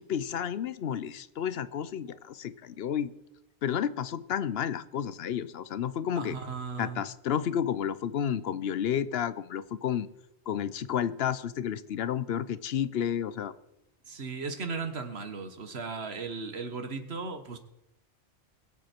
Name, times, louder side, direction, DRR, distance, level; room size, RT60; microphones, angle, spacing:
voice 1, 0.0-3.1 3.6-6.4 6.8-10.1 10.5-13.5, left 9 dB, 65° left, 15 dB, 0.9 m, -31 dB
voice 2, 6.1-7.0 14.0-17.6, right 4 dB, 65° right, 8 dB, 1.5 m, -36 dB
21.5 x 8.1 x 4.5 m, 0.89 s
omnidirectional pair, 1.2 m